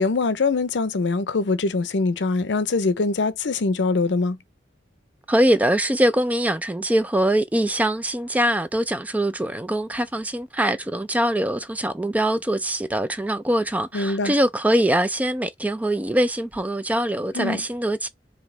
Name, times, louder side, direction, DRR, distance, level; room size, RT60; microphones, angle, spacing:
voice 1, 0.0-4.4 13.9-14.3 17.3-17.6, left 3 dB, 70° left, 0.6 m, -23 dB
voice 2, 5.3-18.1, right 1 dB, 10° right, 0.3 m, -23 dB
4.7 x 2.8 x 3.2 m
head